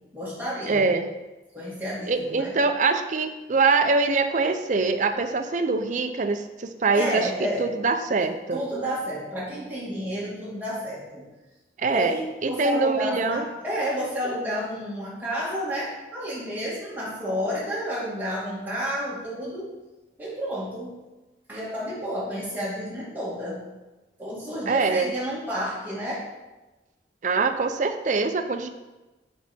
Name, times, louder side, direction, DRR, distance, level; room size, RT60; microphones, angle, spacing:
voice 1, 0.1-0.9 1.5-2.6 6.9-7.7 8.5-11.2 11.9-19.7 20.2-20.9 21.5-23.6 24.2-26.2, equal, 10° right, -8 dB, 2.0 m, -30 dB
voice 2, 0.7-1.1 2.1-8.6 11.8-12.1 12.4-13.5 24.7-25.1 27.2-28.7, right 4 dB, 45° right, 8 dB, 0.5 m, -24 dB
5.8 x 5.4 x 4.3 m, 1.1 s
head